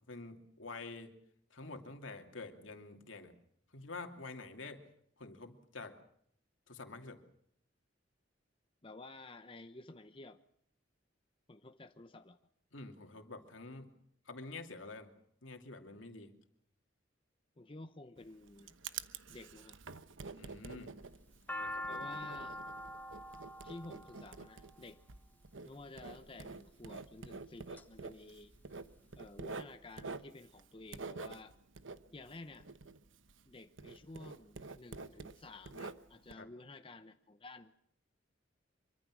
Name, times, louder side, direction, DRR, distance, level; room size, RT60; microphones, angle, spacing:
voice 1, 0.1-1.1 1.5-3.3 3.7-4.8 5.2-6.0 6.7-7.2 12.7-13.9 14.3-15.1 15.4-16.3 20.3-20.9 21.6-21.9 36.4-36.5, left 3 dB, 80° left, 5 dB, 2.6 m, -48 dB
voice 2, 8.8-10.4 11.5-12.4 17.6-18.8 19.3-19.8 21.9-22.6 23.6-25.0 25.6-28.5 29.1-31.5 32.1-32.7 33.5-37.7, left 2 dB, 25° left, 8 dB, 0.8 m, -52 dB
Writing, 18.2-33.5 33.8-36.3, right 4 dB, 80° right, 1.0 m, -48 dB
sound 1, 21.0-25.3 26.1-26.6 27.2-27.8 28.2-28.3 28.4-29.3, left 1 dB, 10° left, 1.4 m, -44 dB
25.0 x 23.5 x 6.2 m, 0.70 s
head